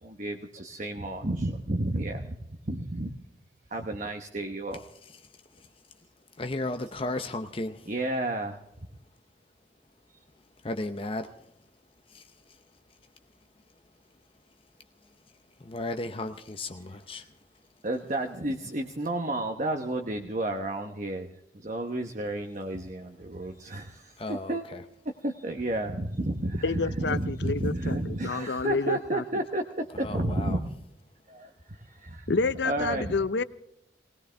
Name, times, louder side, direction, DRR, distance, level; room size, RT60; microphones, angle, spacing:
voice 1, 0.0-2.4 2.7-3.2 3.7-4.8 7.9-8.6 17.8-21.3 21.5-24.6 25.2-30.6 31.3-32.3 32.6-33.1, right 1 dB, 40° right, 1.0 m, -31 dB
voice 2, 4.7-7.9 10.3-17.7 24.0-24.8 29.9-30.6, left 2 dB, 30° left, 0.7 m, -38 dB
voice 3, 26.6-29.2 32.3-33.4, left 3 dB, 70° left, 0.6 m, -29 dB
20.0 x 19.5 x 3.4 m
head